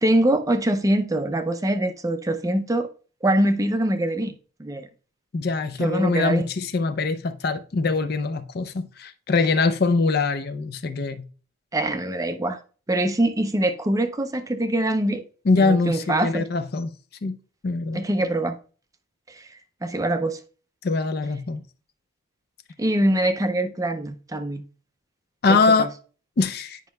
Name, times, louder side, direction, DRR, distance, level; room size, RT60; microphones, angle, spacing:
voice 1, 0.0-2.9 3.2-4.3 4.6-4.9 5.8-6.5 11.7-12.6 12.9-15.2 15.6-16.5 17.9-18.6 19.3-19.5 19.8-20.4 22.8-24.6 25.5-25.9, right 1 dB, 15° right, 0.4 m, -23 dB
voice 2, 5.3-11.2 15.5-16.9 17.2-17.4 17.6-18.0 20.8-21.6 25.4-25.9 26.4-26.8, left 3 dB, 50° left, 0.4 m, -23 dB
9.2 x 5.2 x 2.2 m
head